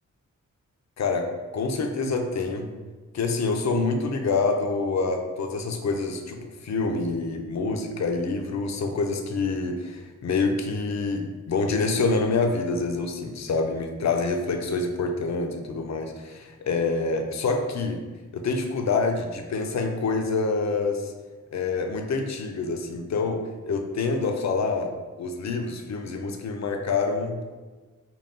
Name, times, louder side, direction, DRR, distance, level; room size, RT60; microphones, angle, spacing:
voice 1, 1.0-2.7 3.1-18.0 18.3-21.1 21.5-24.9 25.2-27.5, left 3 dB, 55° left, 4 dB, 0.5 m, -26 dB
5.4 x 2.3 x 2.5 m, 1.3 s
wide cardioid pair, 95°, 33 cm